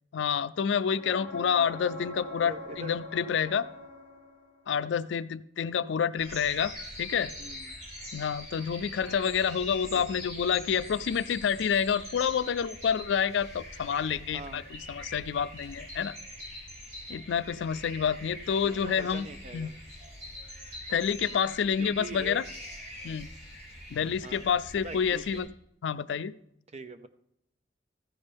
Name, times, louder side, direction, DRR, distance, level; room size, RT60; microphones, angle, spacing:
voice 1, 0.1-3.7 4.7-6.7 7.0-7.3 8.1-16.2 17.1-19.3 19.5-19.7 20.9-22.4 23.0-23.3 23.9-25.5 25.8-26.3, left 7 dB, 80° left, 16 dB, 0.4 m, -28 dB
sound 1, 0.9-4.7 8.4-8.5, left 2 dB, 5° left, 2.4 m, -43 dB
voice 2, 2.4-3.0 7.4-7.8 9.9-10.2 14.3-14.7 18.6-19.7 21.8-22.4 24.2-24.4 24.8-25.5 26.7-27.1, right 2 dB, 40° right, 10 dB, 0.6 m, -43 dB
sound 2, 6.2-25.4, left 1 dB, 55° right, 4.2 m, -44 dB
14.0 x 9.7 x 3.5 m, 0.78 s
head